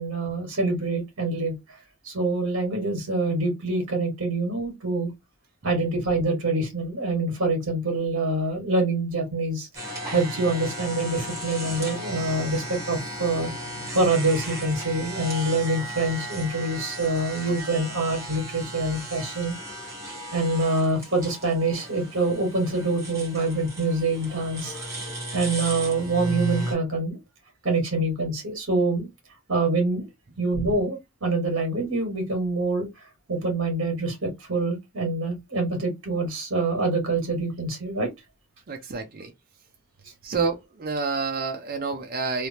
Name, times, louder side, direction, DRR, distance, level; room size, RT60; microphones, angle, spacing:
voice 1, 0.0-1.5 2.0-5.1 5.6-9.7 10.1-13.5 13.9-19.5 20.3-24.7 25.3-27.2 27.6-29.1 29.5-30.0 30.4-32.9 33.3-38.1, right 2 dB, 60° right, 1.6 m, -25 dB
sound 1, 9.7-26.7, right 1 dB, 15° right, 1.1 m, -35 dB
voice 2, 38.7-39.3 40.2-42.5, right 4 dB, 40° right, 0.5 m, -29 dB
3.2 x 2.0 x 2.8 m
head